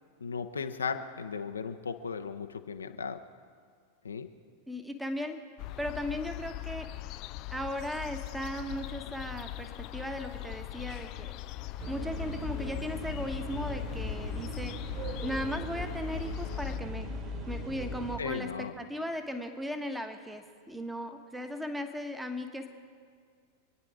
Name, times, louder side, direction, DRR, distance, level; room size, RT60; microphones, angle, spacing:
voice 1, 0.2-3.2 4.0-4.3 18.2-18.7, left 5 dB, 75° left, 7 dB, 0.9 m, -36 dB
voice 2, 4.7-5.4 5.8-6.9 7.5-11.3 11.9-14.8 15.2-17.2 17.5-22.7, left 1 dB, 5° right, 6 dB, 1.3 m, -37 dB
sound 1, 5.6-16.8, left 17 dB, 40° left, 0.4 m, -41 dB
sound 2, 11.8-18.2, equal, 35° right, 3.0 m, -38 dB
26.5 x 9.7 x 4.8 m, 2.1 s
figure-of-eight pair, 90°, 0 cm